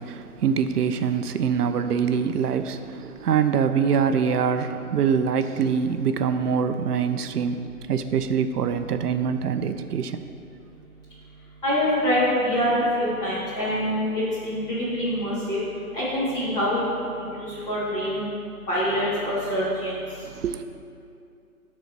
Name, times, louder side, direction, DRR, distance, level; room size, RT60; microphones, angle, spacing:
voice 1, 0.0-10.3 20.2-20.6, right 7 dB, 90° right, 9 dB, 0.6 m, -24 dB
voice 2, 11.6-15.6 15.9-16.8 17.4-18.2 18.7-19.9, equal, 10° left, -11 dB, 1.8 m, -25 dB
10.5 x 4.2 x 4.6 m, 2.6 s
hypercardioid pair, 160°, 45 cm